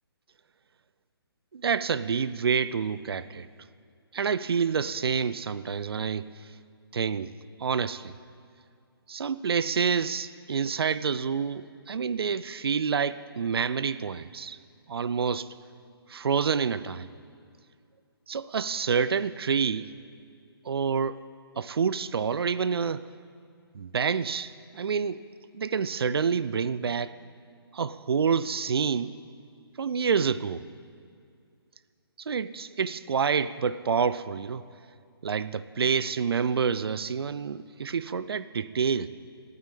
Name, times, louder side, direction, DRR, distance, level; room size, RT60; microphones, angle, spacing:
voice 1, 1.5-3.5 4.1-6.5 6.9-7.3 7.6-8.1 9.1-14.6 14.9-15.5 16.1-17.1 18.3-19.9 20.6-21.2 21.6-23.1 23.7-25.2 25.5-27.2 27.7-29.1 29.8-30.7 32.2-34.6 35.2-39.1, right 6 dB, 70° right, 15 dB, 0.6 m, -28 dB
14.5 x 9.4 x 8.4 m, 2.3 s
figure-of-eight pair, 150°, 13 cm